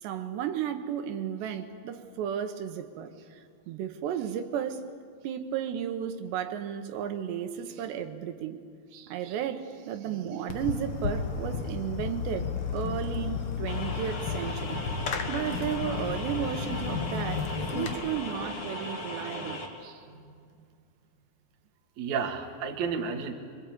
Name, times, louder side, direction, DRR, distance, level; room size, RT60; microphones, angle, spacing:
voice 1, 0.0-4.8 5.2-8.6 8.9-14.8 15.3-20.0, right 9 dB, 85° right, 3.3 m, -34 dB
Fireworks, 10.5-17.9, left 6 dB, 70° left, 1.3 m, -33 dB
sound 1, 13.7-19.7, left 1 dB, 35° left, 2.8 m, -37 dB
voice 2, 22.0-23.3, right 6 dB, 50° right, 2.7 m, -32 dB
25.0 x 24.5 x 8.6 m
omnidirectional pair, 4.8 m